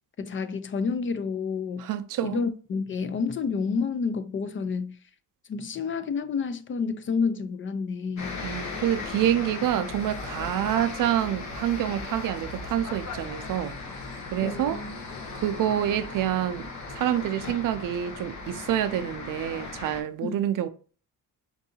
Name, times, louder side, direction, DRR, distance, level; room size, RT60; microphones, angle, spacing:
voice 1, 0.2-1.9 2.2-5.0 5.5-8.4 14.4-15.2 20.2-20.4, left 5 dB, 40° left, 0.4 m, -29 dB
voice 2, 1.8-2.4 8.4-13.7 14.3-14.8 15.3-16.7 16.9-20.7, right 11 dB, 70° right, 0.5 m, -27 dB
sound 1, 8.2-20.0, left 3 dB, 55° left, 1.0 m, -37 dB
4.7 x 2.6 x 2.7 m
cardioid pair, 125°, 33 cm